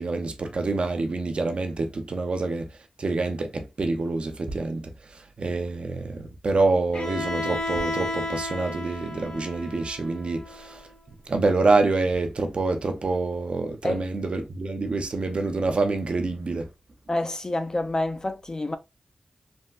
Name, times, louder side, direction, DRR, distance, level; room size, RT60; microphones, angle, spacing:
voice 1, 0.0-2.7 3.0-4.9 5.4-10.8 11.3-16.7, right 3 dB, 60° right, 0.6 m, -26 dB
Bowed string instrument, 6.9-10.8, left 2 dB, 65° left, 1.1 m, -33 dB
voice 2, 17.1-18.8, left 2 dB, 30° left, 0.5 m, -28 dB
3.5 x 2.2 x 2.4 m
cardioid pair, 65°, 2 cm